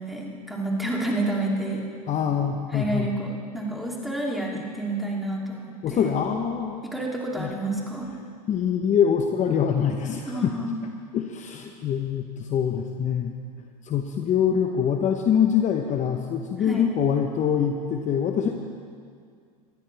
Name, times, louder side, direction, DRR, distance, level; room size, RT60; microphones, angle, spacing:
voice 1, 0.0-1.8 2.7-6.2 6.8-8.1 10.3-10.8 16.6-16.9, right 2 dB, ahead, -3 dB, 3.0 m, -29 dB
voice 2, 2.1-3.1 5.8-6.8 7.4-7.5 8.5-10.5 11.1-13.3 13.8-18.5, left 8 dB, 35° left, 4 dB, 1.0 m, -24 dB
20.5 x 13.0 x 3.4 m, 2.2 s
hypercardioid pair, 95°, 20 cm